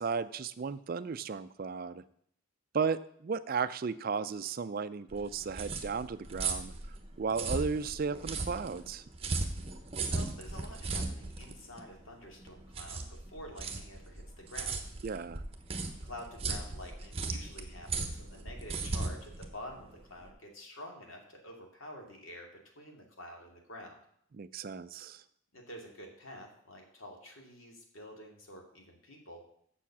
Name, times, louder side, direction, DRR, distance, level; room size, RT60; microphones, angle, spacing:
voice 1, 0.0-2.0 2.7-6.7 7.2-9.0 15.0-15.4 24.3-25.2, right 5 dB, 45° right, 14 dB, 0.4 m, -34 dB
sound 1, 5.1-20.3, right 3 dB, 30° right, 1.0 m, -37 dB
voice 2, 10.1-14.8 16.0-24.0 25.5-29.5, left 1 dB, 75° left, 1 dB, 2.4 m, -48 dB
7.3 x 7.0 x 7.2 m, 0.67 s
head